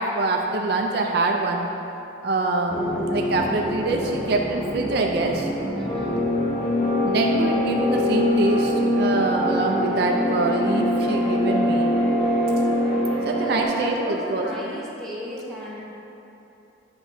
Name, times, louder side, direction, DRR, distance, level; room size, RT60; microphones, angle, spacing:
voice 1, 0.0-1.7 2.2-5.5 7.0-11.9 13.2-14.0 14.3-14.5, right 3 dB, 55° right, 1 dB, 0.4 m, -25 dB
sound 1, 2.7-13.6, left 1 dB, 30° left, 1.1 m, -23 dB
voice 2, 5.7-6.2 13.4-15.8, equal, 5° left, -7 dB, 1.1 m, -33 dB
9.5 x 5.9 x 2.7 m, 3.0 s
head